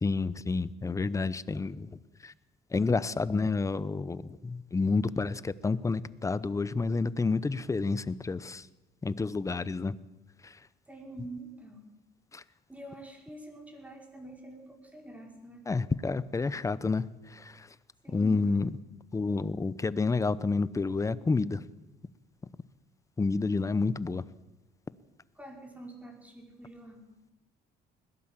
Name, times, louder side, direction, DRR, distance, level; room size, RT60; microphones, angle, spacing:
voice 1, 0.0-1.9 2.2-2.3 2.7-8.6 9.0-9.9 12.3-12.4 15.7-17.0 17.3-17.7 18.1-18.7 19.1-21.6 23.2-24.2, left 4 dB, 20° left, 17 dB, 0.8 m, -29 dB
voice 2, 10.9-11.8 12.7-15.6 18.0-18.4 25.3-27.0, right 1 dB, 10° right, 2 dB, 5.0 m, -46 dB
21.0 x 17.0 x 7.5 m, 1.0 s
cardioid pair, 110°, 17 cm